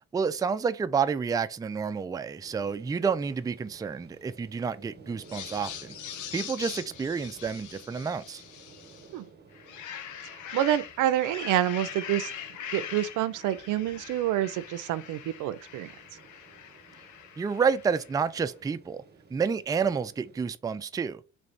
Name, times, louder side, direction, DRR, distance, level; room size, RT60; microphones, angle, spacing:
voice 1, 0.1-5.9 6.3-8.4 17.4-19.0 19.3-21.2, right 6 dB, 15° right, 0.3 m, -29 dB
sound 1, 2.4-20.4, right 4 dB, 35° right, 1.1 m, -55 dB
sound 2, 5.2-9.1 9.5-18.2, left 9 dB, 80° left, 0.6 m, -42 dB
voice 2, 10.5-12.3 12.7-15.9, right 12 dB, 85° right, 0.5 m, -27 dB
3.3 x 3.2 x 4.0 m
cardioid pair, 90°, 30 cm